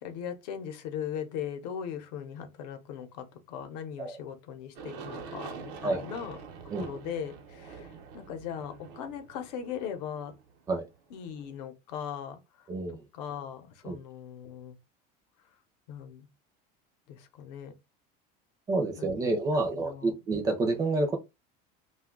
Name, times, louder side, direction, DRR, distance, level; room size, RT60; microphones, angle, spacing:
voice 1, 0.0-6.4 6.8-10.3 11.1-12.7 13.1-14.8 15.9-16.3 17.1-17.7 19.0-20.2, left 8 dB, 80° left, 0.8 m, -39 dB
Aircraft, 4.7-11.4, right 5 dB, 80° right, 0.8 m, -45 dB
voice 2, 12.7-13.0 13.8-14.0 18.7-21.2, right 2 dB, 15° right, 0.4 m, -28 dB
2.5 x 2.3 x 3.5 m
cardioid pair, 175°, 21 cm